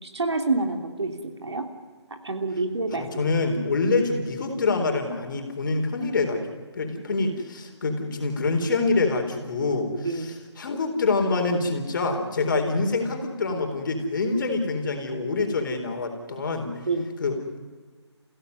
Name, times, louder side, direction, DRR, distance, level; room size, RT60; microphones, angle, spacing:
voice 1, 0.0-1.1 1.4-1.7 2.1-3.3 10.0-10.3 16.9-17.0, right 3 dB, 70° right, 5 dB, 3.2 m, -27 dB
voice 2, 3.0-6.4 6.7-16.7 17.2-17.6, left 3 dB, 45° left, 5 dB, 3.9 m, -26 dB
28.5 x 16.5 x 9.6 m, 1.4 s
figure-of-eight pair, 155°, 15 cm